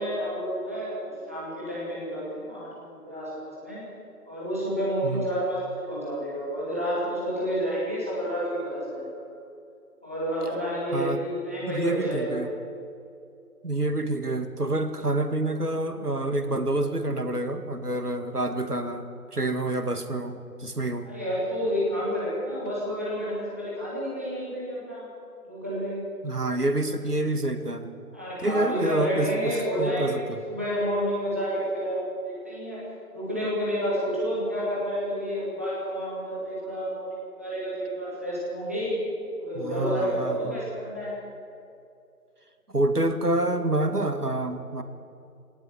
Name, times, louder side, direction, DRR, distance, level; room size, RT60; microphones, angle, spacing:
voice 1, 0.0-3.8 4.3-9.2 10.0-12.4 21.0-25.1 25.4-26.0 28.1-32.8 33.1-37.1 37.4-39.0 39.4-41.1, equal, 10° right, -8 dB, 2.4 m, -30 dB
voice 2, 11.7-12.5 13.6-21.1 26.2-28.0 28.4-30.4 39.6-40.6 42.7-44.8, right 2 dB, 85° right, 8 dB, 2.2 m, -27 dB
19.0 x 16.5 x 9.7 m, 2.5 s
figure-of-eight pair, 175°, 45 cm